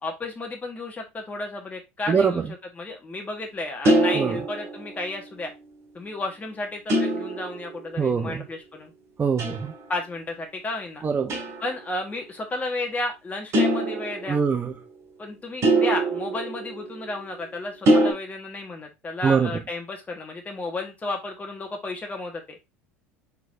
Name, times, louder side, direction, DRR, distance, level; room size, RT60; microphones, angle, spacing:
voice 1, 0.0-5.5 5.9-8.9 9.9-11.0 11.6-14.4 15.2-22.6, left 2 dB, 20° left, 1.3 m, -33 dB
sound 1, 3.8-5.2 6.9-8.0 9.4-9.8 11.3-11.8 13.5-14.6 15.6-17.3 17.9-18.1, right 1 dB, 45° right, 2.3 m, -23 dB
voice 2, 8.0-8.4 9.2-9.7 11.0-11.4 14.3-14.7 19.2-19.5, right 6 dB, 25° right, 0.6 m, -23 dB
4.6 x 4.1 x 2.5 m
hypercardioid pair, 80°, 7 cm